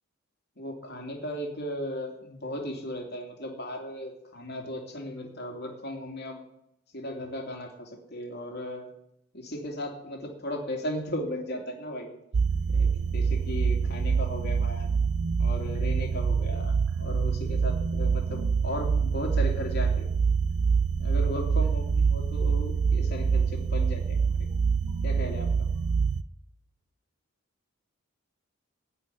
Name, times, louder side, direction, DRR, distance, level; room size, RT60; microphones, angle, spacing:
voice 1, 0.6-6.4 6.9-8.9 9.3-12.2 12.7-14.9 15.4-20.1 21.0-24.5 25.0-25.5, left 1 dB, 55° left, 1 dB, 2.8 m, -36 dB
sound 1, 12.3-26.2, right 5 dB, 90° right, 0.5 m, -26 dB
17.0 x 5.6 x 9.9 m, 0.80 s
head